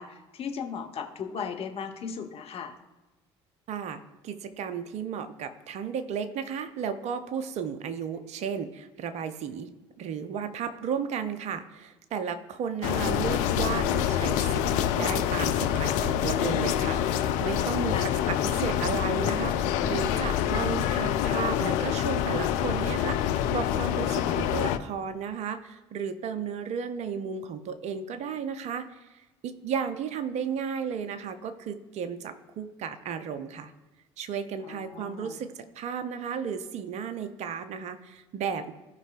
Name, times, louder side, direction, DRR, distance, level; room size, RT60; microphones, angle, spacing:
voice 1, 0.0-2.7 17.9-18.2 34.6-35.4, left 6 dB, 40° left, 4 dB, 1.1 m, -37 dB
voice 2, 3.7-9.7 10.0-33.7 34.2-38.7, right 7 dB, 50° right, 9 dB, 0.8 m, -34 dB
sound 1, 12.8-24.8, left 10 dB, 60° left, 0.5 m, -26 dB
16.5 x 5.5 x 2.5 m, 1.1 s
figure-of-eight pair, 55°, 15 cm